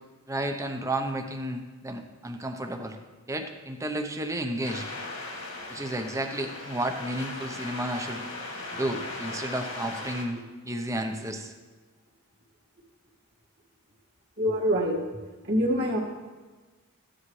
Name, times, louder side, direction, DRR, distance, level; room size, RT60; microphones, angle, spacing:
voice 1, 0.3-3.0 3.3-4.9 5.7-8.2 8.7-10.4 10.6-11.5, right 1 dB, 15° right, 5 dB, 0.7 m, -32 dB
sound 1, 4.6-10.3, left 2 dB, 65° left, 2.0 m, -38 dB
voice 2, 14.4-15.0 15.4-16.0, equal, 45° right, -2 dB, 1.9 m, -24 dB
14.5 x 10.0 x 3.2 m, 1.3 s
head